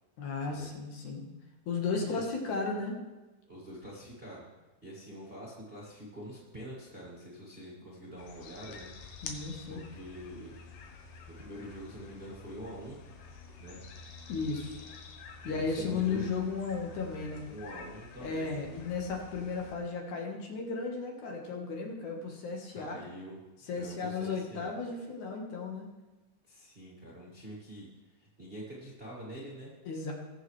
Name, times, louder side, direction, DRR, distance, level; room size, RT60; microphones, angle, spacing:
voice 1, 0.2-1.2 1.7-3.0 9.2-9.8 14.3-14.9 15.4-17.4 18.2-23.0 23.7-25.9 29.9-30.1, left 4 dB, 70° left, 0 dB, 2.7 m, -35 dB
voice 2, 3.5-4.4 4.8-8.9 9.7-10.6 11.3-13.0 13.6-13.8 15.4-16.3 17.5-18.6 22.7-23.4 23.8-24.7 26.5-27.9 28.1-29.7, equal, 25° right, -5 dB, 1.5 m, -45 dB
sound 1, 8.2-19.8, left 4 dB, 90° left, 2.7 m, -49 dB
20.5 x 7.0 x 3.3 m, 1.1 s
omnidirectional pair, 3.8 m